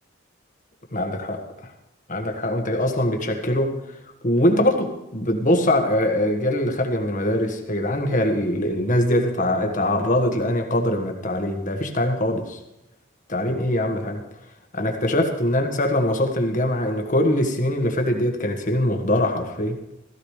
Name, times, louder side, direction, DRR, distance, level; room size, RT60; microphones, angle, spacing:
voice 1, 0.9-1.7 2.1-3.7 4.2-12.6 13.3-14.2 14.7-19.8, left 1 dB, 40° left, 3 dB, 1.5 m, -22 dB
15.5 x 15.0 x 3.3 m, 0.94 s
head